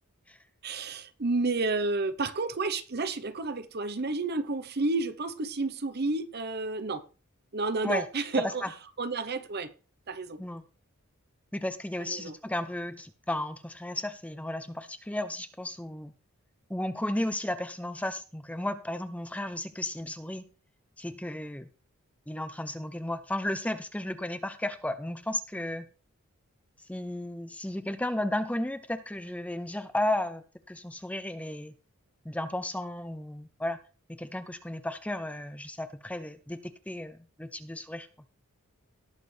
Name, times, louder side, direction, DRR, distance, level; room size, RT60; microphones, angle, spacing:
voice 1, 0.6-7.0 7.5-8.6 9.0-9.7 10.1-10.4 12.1-12.4, right 3 dB, 50° right, 0.8 m, -31 dB
voice 2, 11.5-16.1 16.7-20.4 21.0-21.7 22.3-25.9 26.9-31.7 32.2-33.8 34.1-38.1, left 1 dB, 5° left, 0.6 m, -34 dB
18.5 x 6.6 x 3.3 m
head